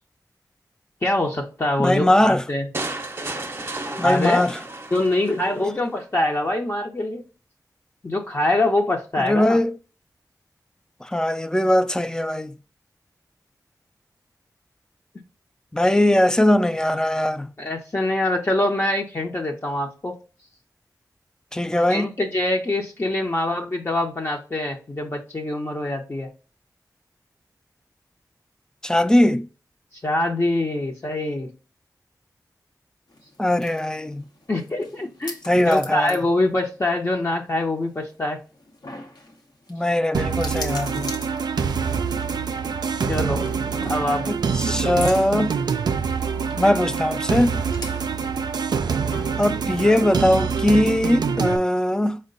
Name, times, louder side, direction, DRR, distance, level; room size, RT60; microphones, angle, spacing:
voice 1, 1.0-2.7 4.0-4.5 4.9-7.2 8.0-9.6 17.6-20.1 21.9-26.3 30.0-31.5 34.5-38.4 43.1-43.5 43.8-44.3 44.7-44.9, left 1 dB, 40° left, 0.7 m, -24 dB
voice 2, 1.8-2.4 4.0-4.6 9.2-9.8 11.0-12.6 15.7-17.5 21.5-22.1 28.8-29.5 33.4-34.2 35.5-36.2 39.7-41.1 44.3-45.5 46.6-47.6 49.4-52.2, left 1 dB, 10° left, 0.3 m, -20 dB
sound 1, 2.7-5.7, right 2 dB, 35° right, 0.6 m, -33 dB
sound 2, 33.1-50.1, left 2 dB, 75° left, 0.9 m, -43 dB
sound 3, 40.1-51.6, right 6 dB, 85° right, 0.3 m, -25 dB
4.5 x 2.2 x 3.8 m
wide cardioid pair, 55°, 7 cm